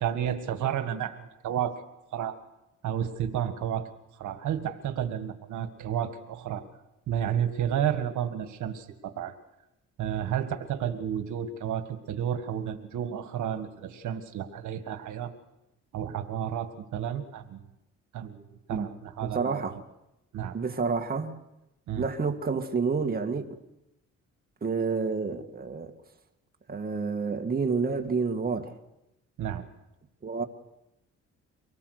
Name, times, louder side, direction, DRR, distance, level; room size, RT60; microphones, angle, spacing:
voice 1, 0.0-1.8 2.1-2.4 2.8-3.9 4.2-6.6 7.1-9.3 10.0-15.3 15.9-17.6 18.1-18.4 18.7-19.8 20.3-20.6 21.9-22.0 29.4-29.6, right 9 dB, 75° right, 1.9 m, -31 dB
voice 2, 19.2-19.8 20.5-21.4 22.0-23.6 24.6-25.9 26.7-28.8 30.2-30.4, right 4 dB, 30° right, 2.0 m, -29 dB
25.0 x 18.5 x 6.7 m
cardioid pair, 90°, 30 cm